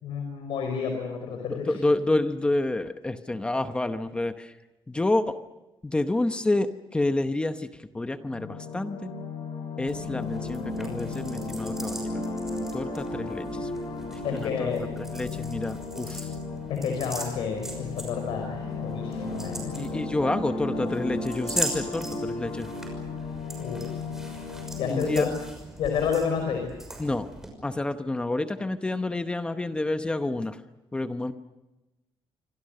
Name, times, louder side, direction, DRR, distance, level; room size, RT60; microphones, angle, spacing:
voice 1, 0.0-1.8 14.2-14.9 16.7-19.7 20.2-20.3 23.6-23.9 24.8-25.3 25.8-26.7, left 6 dB, 80° left, 4 dB, 5.3 m, -30 dB
voice 2, 1.5-4.5 4.9-5.4 5.8-7.7 7.9-9.1 9.8-12.1 12.7-13.7 14.1-14.7 15.1-16.3 19.8-22.7 24.9-25.3 27.0-27.3 27.6-30.6 30.9-31.3, left 2 dB, 10° left, 9 dB, 0.9 m, -28 dB
sound 1, 8.2-25.6, left 3 dB, 55° left, 7.5 m, -35 dB
sound 2, 9.8-27.5, right 1 dB, 5° right, 6.0 m, -40 dB
28.0 x 25.5 x 6.6 m, 1.0 s
cardioid pair, 175°, 9 cm